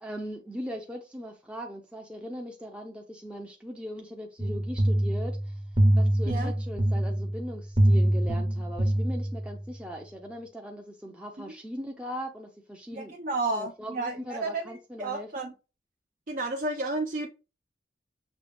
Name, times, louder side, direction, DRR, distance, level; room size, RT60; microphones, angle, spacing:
voice 1, 0.0-5.6 6.0-13.2 13.5-15.5, equal, 5° right, 0.5 m, -39 dB
sound 1, 4.4-9.6, right 1 dB, 25° right, 0.8 m, -25 dB
voice 2, 12.9-15.5 16.3-17.3, right 2 dB, 50° right, 0.5 m, -32 dB
6.2 x 2.3 x 3.4 m
head